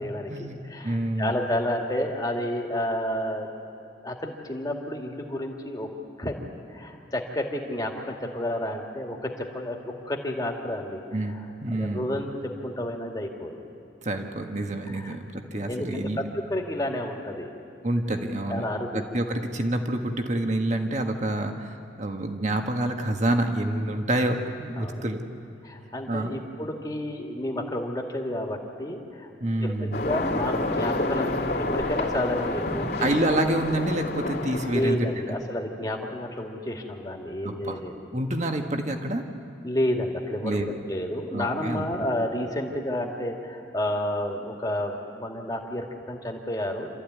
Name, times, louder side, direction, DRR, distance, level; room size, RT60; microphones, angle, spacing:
voice 1, 0.0-3.5 4.0-5.9 6.2-6.4 6.7-11.0 11.7-13.6 14.9-15.1 15.7-17.5 18.5-19.0 24.8-25.1 25.6-29.3 29.6-32.9 33.2-33.3 34.7-37.9 39.6-46.9, left 1 dB, 20° left, 1 dB, 2.2 m, -30 dB
voice 2, 0.8-1.3 11.1-12.1 14.0-16.2 17.8-18.7 18.9-25.2 26.1-26.4 29.4-30.0 33.0-35.3 37.4-37.8 38.1-39.2 40.4-40.7 41.3-41.9, right 1 dB, 40° right, 4 dB, 1.6 m, -27 dB
sound 1, 29.9-34.9, left 2 dB, 55° left, 2.7 m, -28 dB
27.5 x 14.5 x 9.5 m, 2.7 s
head